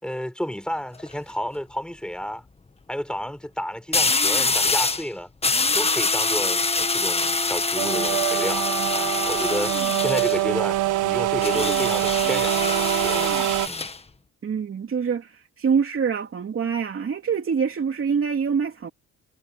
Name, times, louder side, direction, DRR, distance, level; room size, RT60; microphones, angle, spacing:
voice 1, 0.0-2.4 2.9-5.3 5.7-8.7 8.9-13.9, equal, 5° left, 6.8 m, -31 dB
sound 1, 0.8-1.1 3.9-5.1 5.4-10.4 11.4-14.0, left 3 dB, 20° left, 1.5 m, -24 dB
sound 2, 7.8-13.7, right 15 dB, 85° right, 1.4 m, -24 dB
voice 2, 14.4-18.9, right 6 dB, 45° right, 2.8 m, -25 dB
cardioid pair, 90°, 30 cm